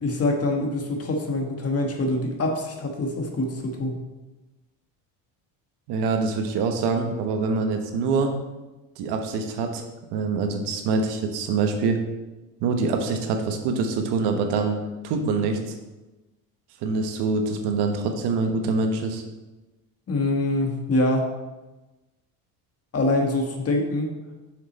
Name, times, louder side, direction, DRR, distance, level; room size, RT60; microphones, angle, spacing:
voice 1, 0.0-4.0 20.1-21.3 22.9-24.1, left 2 dB, 35° left, 3 dB, 1.5 m, -25 dB
voice 2, 5.9-8.3 9.0-9.8 10.1-12.0 12.6-14.8 15.0-15.8 16.8-19.2, right 4 dB, 80° right, 5 dB, 1.2 m, -25 dB
6.6 x 6.3 x 4.1 m, 1.1 s
supercardioid pair, 90°, 39 cm